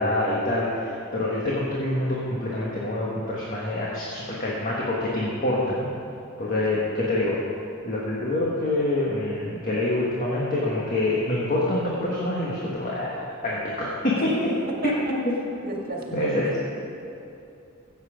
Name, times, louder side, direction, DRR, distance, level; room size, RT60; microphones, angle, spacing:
voice 1, 0.0-5.9 6.4-7.4 7.8-14.3 16.1-16.6, left 1 dB, 40° left, -5 dB, 1.5 m, -26 dB
voice 2, 6.5-7.0 14.8-15.1 15.6-16.6, right 2 dB, 45° right, -1 dB, 1.9 m, -35 dB
15.0 x 8.4 x 5.1 m, 2.7 s
head